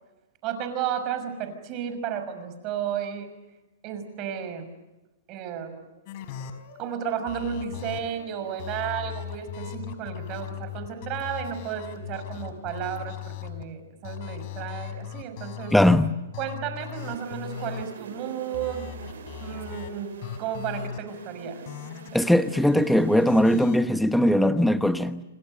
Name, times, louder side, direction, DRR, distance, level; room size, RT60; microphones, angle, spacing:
voice 1, 0.4-3.3 3.8-4.7 5.3-5.8 6.8-15.8 16.4-18.9 19.4-21.6, right 8 dB, 35° right, 10 dB, 5.9 m, -33 dB
sound 1, 6.1-13.6 14.0-15.9 16.3-17.8 18.5-19.9 20.2-21.0 21.7-22.1 23.3-23.8, left 10 dB, 45° left, 4.7 m, -38 dB
voice 2, 15.7-16.1 22.1-25.2, left 1 dB, ahead, 11 dB, 1.1 m, -20 dB
sound 2, 17.0-23.5, right 6 dB, 75° right, 7.7 m, -44 dB
28.0 x 26.0 x 6.6 m, 1.0 s
hypercardioid pair, 135°, 0 cm